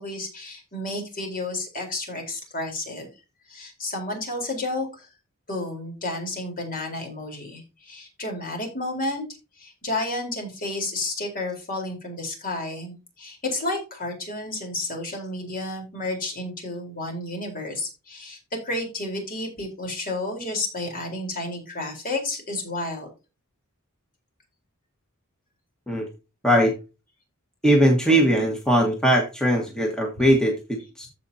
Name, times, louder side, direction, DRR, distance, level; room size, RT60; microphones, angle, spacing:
voice 1, 0.0-3.1 3.5-5.1 5.5-9.2 9.6-23.1, left 2 dB, 40° left, 1 dB, 4.2 m, -31 dB
voice 2, 27.6-31.1, equal, 5° left, 0 dB, 1.7 m, -20 dB
15.0 x 5.4 x 2.8 m, 0.29 s
head